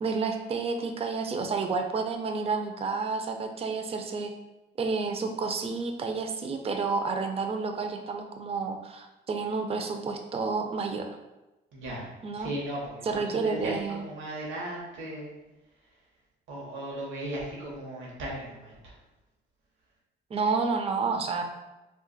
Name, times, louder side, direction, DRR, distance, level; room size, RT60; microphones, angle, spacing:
voice 1, 0.0-4.3 4.8-11.1 12.2-12.5 13.1-14.0 20.3-21.4, right 4 dB, 30° right, 5 dB, 0.4 m, -30 dB
voice 2, 11.7-15.3 15.8-16.0 16.5-19.0, right 1 dB, 80° right, -4 dB, 1.0 m, -37 dB
2.4 x 2.4 x 3.8 m, 1.0 s
cardioid pair, 90°, 20 cm